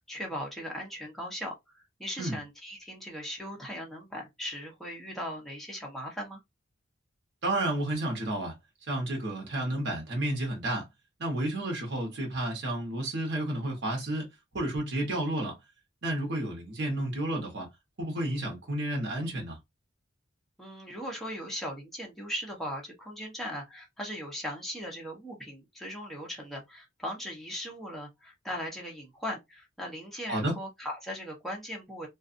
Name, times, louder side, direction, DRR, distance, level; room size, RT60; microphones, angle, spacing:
voice 1, 0.0-6.4 20.6-32.1, equal, ahead, 0.8 m, -38 dB
voice 2, 7.4-8.5 8.9-10.9 11.2-14.3 14.5-15.6 16.0-17.7 18.0-19.6 30.3-30.6, right 1 dB, 65° right, 1.0 m, -31 dB
2.5 x 2.4 x 2.5 m
head